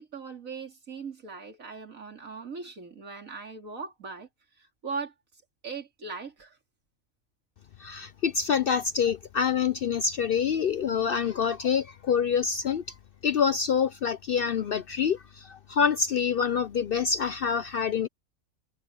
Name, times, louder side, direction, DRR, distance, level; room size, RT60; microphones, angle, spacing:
voice 1, 0.0-4.3 4.8-5.1 5.6-6.6, right 4 dB, 80° right, 3.5 m, -39 dB
voice 2, 7.8-12.8 13.2-18.1, left 7 dB, 60° left, 0.6 m, -26 dB
omnidirectional pair, 1.4 m